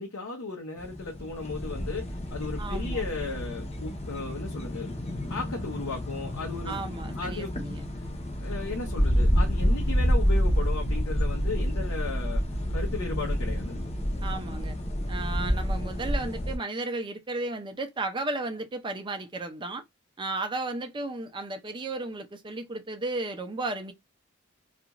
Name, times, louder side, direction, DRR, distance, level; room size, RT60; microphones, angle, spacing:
voice 1, 0.0-4.9 5.3-6.8 7.2-7.6 8.4-12.4 12.7-13.8, left 3 dB, 75° left, 0.7 m, -35 dB
sound 1, 0.8-16.6, equal, 30° left, 0.7 m, -28 dB
voice 2, 2.6-3.0 6.7-7.8 14.2-14.8 15.1-19.8 20.2-23.9, right 2 dB, 25° right, 0.5 m, -34 dB
2.5 x 2.3 x 2.9 m
head